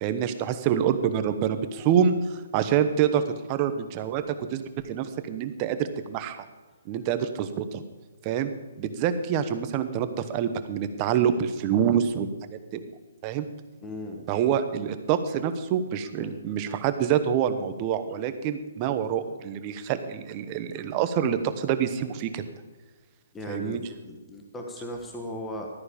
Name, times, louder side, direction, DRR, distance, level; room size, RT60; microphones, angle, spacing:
voice 1, 0.0-3.2 3.5-6.5 6.9-7.8 8.2-8.5 8.8-12.3 12.7-12.8 13.2-13.5 14.3-22.5 23.5-23.8, right 8 dB, 25° right, 10 dB, 1.0 m, -26 dB
voice 2, 13.8-14.3 16.2-16.4 23.3-25.7, left 1 dB, 10° left, 1 dB, 1.3 m, -37 dB
13.5 x 9.4 x 5.1 m, 1.3 s
hypercardioid pair, 160°, 0 cm